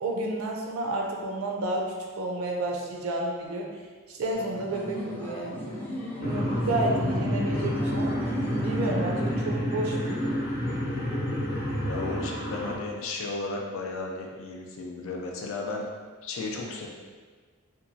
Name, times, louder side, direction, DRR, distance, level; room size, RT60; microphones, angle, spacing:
voice 1, 0.0-3.7 4.1-5.6 6.2-8.2 8.6-11.1, right 2 dB, 75° right, 0 dB, 0.5 m, -31 dB
sound 1, 4.3-9.3, left 1 dB, 10° left, 0.4 m, -38 dB
sound 2, 6.2-12.8, equal, 45° left, 0.8 m, -29 dB
voice 2, 11.7-15.8 16.2-16.9, left 3 dB, 70° left, 0 dB, 0.4 m, -34 dB
2.9 x 2.3 x 2.7 m, 1.5 s
head